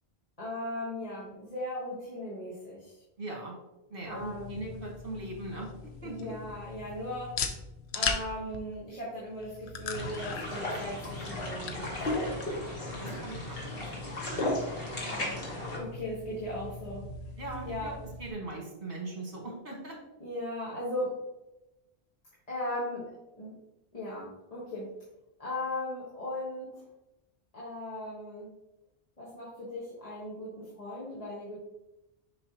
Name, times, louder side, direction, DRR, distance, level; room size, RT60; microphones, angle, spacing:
voice 1, 0.4-2.9 4.0-4.5 6.0-7.3 7.9-12.1 15.0-15.4 15.7-17.1 17.6-17.9 20.2-21.2 22.5-23.1 23.4-23.5 23.9-24.9 25.4-26.8 27.5-28.5 29.2-31.6, left 1 dB, 35° left, -7 dB, 1.5 m, -38 dB
voice 2, 3.2-3.5 3.9-6.3 12.5-12.6 13.0-14.5 17.4-17.9 18.2-20.0, right 2 dB, 60° right, -1 dB, 1.9 m, -40 dB
sound 1, 4.0-18.3, left 5 dB, 85° left, 0.9 m, -40 dB
sound 2, 9.9-15.8, left 1 dB, 65° left, 1.7 m, -35 dB
6.5 x 5.4 x 2.9 m, 0.94 s
omnidirectional pair, 1.1 m